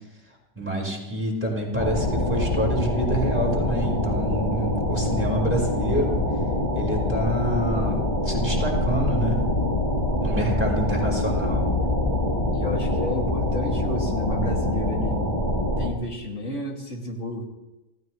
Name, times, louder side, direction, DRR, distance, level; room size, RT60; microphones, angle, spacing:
voice 1, 0.6-6.2 6.7-9.4 10.2-11.7, right 1 dB, 10° right, -3 dB, 5.1 m, -27 dB
sound 1, 1.8-15.9, left 1 dB, 30° left, 3.4 m, -24 dB
voice 2, 10.7-11.4 12.5-15.3 15.8-17.4, equal, 85° left, 0 dB, 3.1 m, -31 dB
27.0 x 16.5 x 3.2 m, 1.0 s
omnidirectional pair, 1.2 m